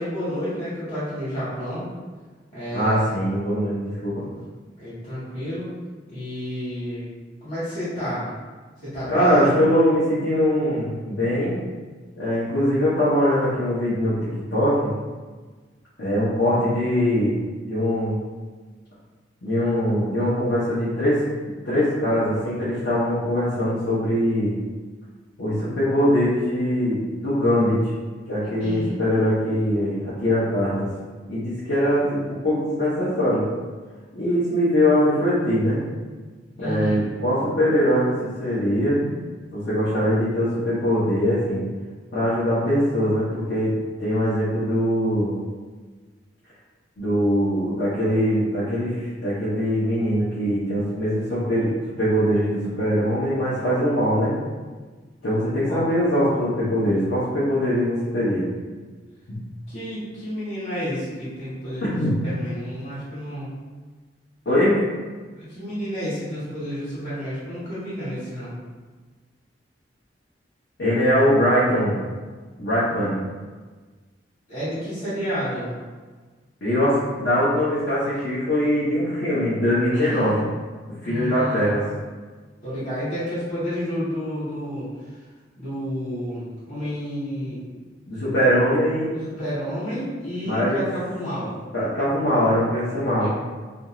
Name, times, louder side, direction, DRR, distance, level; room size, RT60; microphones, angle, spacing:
voice 1, 0.0-1.9 2.5-3.1 4.2-4.4 4.8-5.7 6.1-7.1 7.4-8.3 8.8-9.6 28.6-28.9 36.6-37.0 55.7-55.8 59.7-62.0 62.2-63.5 65.4-68.5 74.5-75.7 79.9-80.3 81.0-81.7 82.6-84.9 85.6-87.6 89.2-91.5 93.2-93.3, equal, 35° left, -15 dB, 1.1 m, -30 dB
voice 2, 2.7-4.2 9.1-11.6 12.2-14.9 16.0-17.3 17.7-18.2 19.4-21.2 21.6-24.6 25.4-27.8 28.3-30.9 31.3-33.4 34.1-35.8 36.6-39.1 39.5-41.6 42.1-43.7 44.0-45.3 47.0-51.7 52.0-54.3 55.2-58.4 59.3-59.5 61.8-62.1 64.5-64.8 70.8-72.0 72.6-73.2 76.6-80.4 81.0-81.8 88.1-89.1 90.4-90.8 91.7-93.3, equal, 65° left, -11 dB, 0.7 m, -22 dB
2.5 x 2.3 x 2.9 m, 1.4 s
head